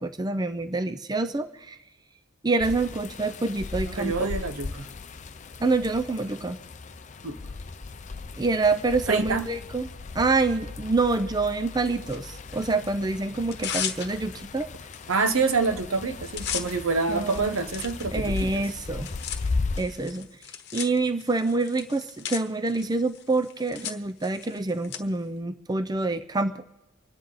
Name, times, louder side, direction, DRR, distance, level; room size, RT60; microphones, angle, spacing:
voice 1, 0.0-1.8 2.4-4.3 5.6-6.6 8.4-9.9 10.1-14.7 17.1-17.5 18.1-19.1 19.8-20.3 20.7-26.6, right 3 dB, 20° right, 10 dB, 0.5 m, -26 dB
sound 1, 2.6-19.8, left 3 dB, 35° left, 0.5 m, -37 dB
voice 2, 3.9-4.9 7.2-7.3 9.1-9.4 15.1-18.6, right 4 dB, 85° right, 9 dB, 1.1 m, -27 dB
Tearing, 12.1-12.9 13.3-14.4 14.9-15.0 15.3-15.7 15.9-25.0, left 9 dB, 55° left, 1.1 m, -37 dB
25.5 x 9.9 x 4.1 m, 0.99 s
head